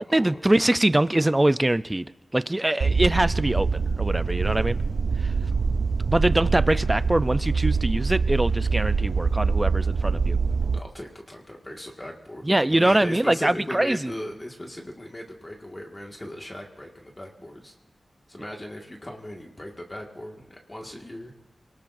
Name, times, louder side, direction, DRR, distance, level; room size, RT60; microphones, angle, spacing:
voice 1, 0.1-2.1 2.3-4.8 5.2-5.3 6.1-10.4 12.4-14.1, right 1 dB, 15° right, 14 dB, 0.5 m, -23 dB
sound 1, 2.8-10.8, right 4 dB, 75° right, 0.6 m, -24 dB
voice 2, 10.7-17.7 18.3-21.3, left 1 dB, 20° left, 0 dB, 1.9 m, -38 dB
27.5 x 19.0 x 2.6 m, 1.1 s
wide cardioid pair, 105°, 0 cm